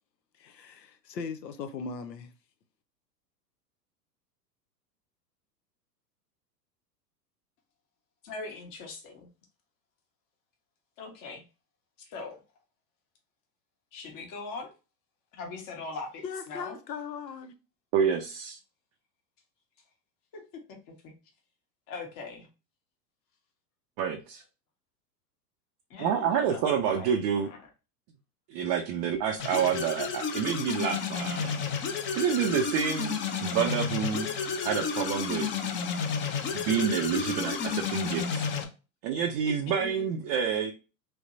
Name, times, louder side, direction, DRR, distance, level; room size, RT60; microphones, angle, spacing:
voice 1, 0.4-2.3 16.2-17.5, left 5 dB, 85° left, 0.7 m, -38 dB
voice 2, 8.2-9.3 11.0-11.4 12.0-12.4 13.9-14.7 15.3-16.8 20.7-21.1 21.9-22.5 25.9-27.6 39.4-39.5 39.8-39.9, left 3 dB, 40° left, 1.4 m, -41 dB
voice 3, 17.9-18.6 24.0-24.4 26.0-27.5 28.5-34.3 34.6-35.5 36.5-38.5 39.0-40.7, right 7 dB, 35° right, 0.4 m, -28 dB
sound 1, 29.4-38.6, left 6 dB, 25° left, 0.6 m, -31 dB
3.2 x 3.1 x 2.6 m
hypercardioid pair, 100°, 49 cm